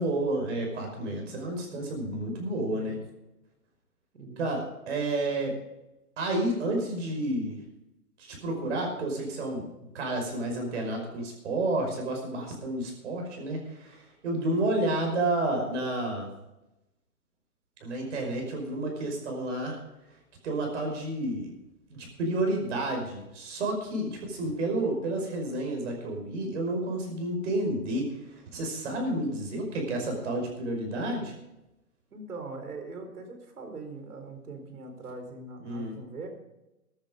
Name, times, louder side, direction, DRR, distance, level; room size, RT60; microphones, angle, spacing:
voice 1, 0.0-3.0 4.4-5.5 6.2-7.6 8.2-16.3 17.8-19.8 20.4-21.5 21.9-31.3 35.6-35.9, right 1 dB, 50° right, 2 dB, 5.4 m, -30 dB
voice 2, 32.1-36.3, right 3 dB, 75° right, 5 dB, 4.4 m, -42 dB
15.0 x 10.5 x 5.2 m, 0.93 s
hypercardioid pair, 160°, 45 cm